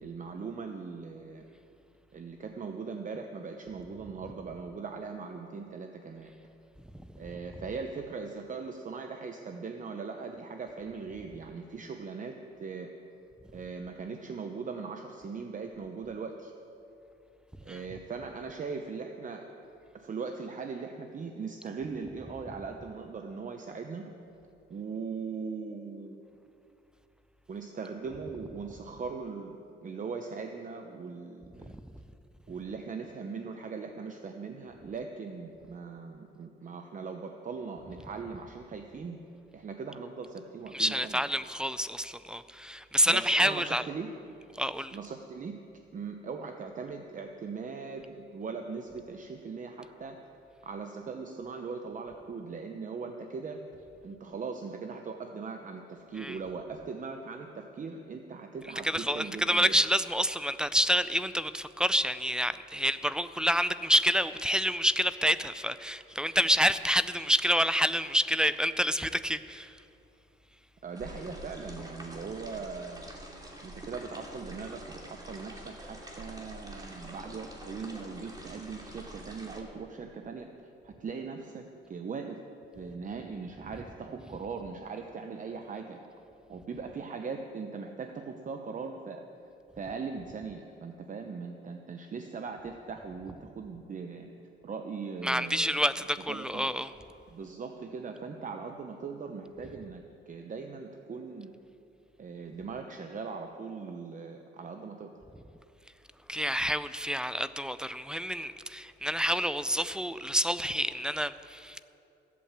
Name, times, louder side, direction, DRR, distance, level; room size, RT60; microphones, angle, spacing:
voice 1, 0.0-1.4 2.1-6.3 7.2-12.9 13.5-16.5 17.6-19.5 19.9-24.1 24.7-26.2 27.5-31.7 32.5-39.2 39.5-41.2 43.0-44.1 44.9-45.6 45.9-50.2 50.6-53.6 54.0-59.8 70.8-73.1 73.6-80.5 80.8-82.4 82.8-86.0 86.5-89.2 89.8-94.3 94.6-95.8 96.3-96.7 97.3-101.5 102.2-105.1, right 5 dB, 40° right, 5 dB, 0.9 m, -40 dB
voice 2, 40.7-43.8 44.6-45.0 56.2-56.4 58.8-69.8 95.2-96.9 106.3-111.8, equal, 5° right, 13 dB, 0.5 m, -28 dB
sound 1, 70.9-79.6, right 1 dB, 20° right, 2.7 m, -46 dB
15.5 x 8.5 x 7.4 m, 2.8 s
cardioid pair, 90°, 20 cm